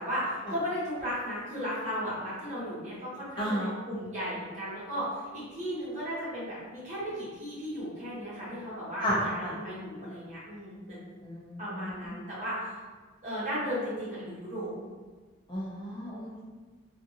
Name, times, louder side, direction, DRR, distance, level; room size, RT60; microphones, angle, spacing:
voice 1, 0.0-11.0 11.6-12.7 13.2-14.7, equal, 35° right, -9 dB, 1.1 m, -35 dB
voice 2, 3.4-3.8 9.0-9.5 11.2-11.9 15.5-16.4, equal, 20° left, -7 dB, 0.5 m, -32 dB
2.5 x 2.4 x 2.7 m, 1.3 s
head